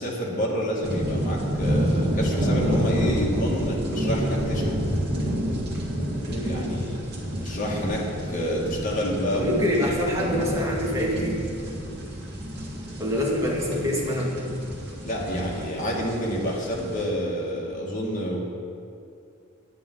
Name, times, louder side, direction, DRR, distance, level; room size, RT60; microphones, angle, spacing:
voice 1, 0.0-4.8 6.4-7.0 7.4-8.0 8.3-9.7 10.1-10.3 15.0-18.4, equal, 40° left, -4 dB, 1.8 m, -28 dB
sound 1, 0.8-17.0, equal, 50° right, 1.8 m, -29 dB
voice 2, 6.3-6.7 9.3-11.4 13.0-14.3, left 1 dB, 15° right, -4 dB, 1.7 m, -26 dB
10.0 x 9.4 x 3.9 m, 2.5 s
head